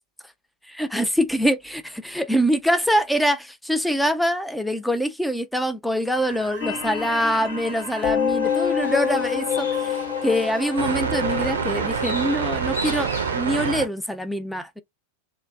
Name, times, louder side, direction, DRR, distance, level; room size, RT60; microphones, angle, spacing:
voice 1, 0.6-14.8, equal, ahead, 0.4 m, -24 dB
sound 1, 6.1-13.9, right 6 dB, 70° right, 0.6 m, -30 dB
sound 2, 6.6-13.5, left 8 dB, 45° left, 0.7 m, -28 dB
Livestock farm animals working animals, 8.4-13.7, left 5 dB, 70° left, 1.1 m, -36 dB
2.9 x 2.1 x 2.3 m
figure-of-eight pair, 90°, 0 cm